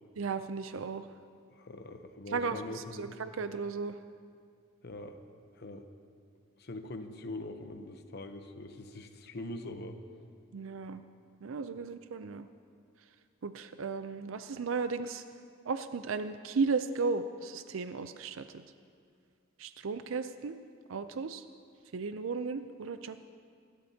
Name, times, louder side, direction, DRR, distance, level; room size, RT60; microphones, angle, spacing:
voice 1, 0.2-1.0 2.3-2.6 3.0-3.9 10.5-11.0 11.4-12.5 13.4-15.2 15.7-18.4 19.6-20.6 20.9-21.4 21.9-23.2, right 4 dB, 85° right, 10 dB, 0.5 m, -35 dB
voice 2, 1.5-3.2 4.8-5.2 5.6-5.9 6.6-10.0 11.7-11.9, left 2 dB, 55° left, 7 dB, 0.8 m, -43 dB
27.0 x 13.0 x 2.8 m, 2.2 s
head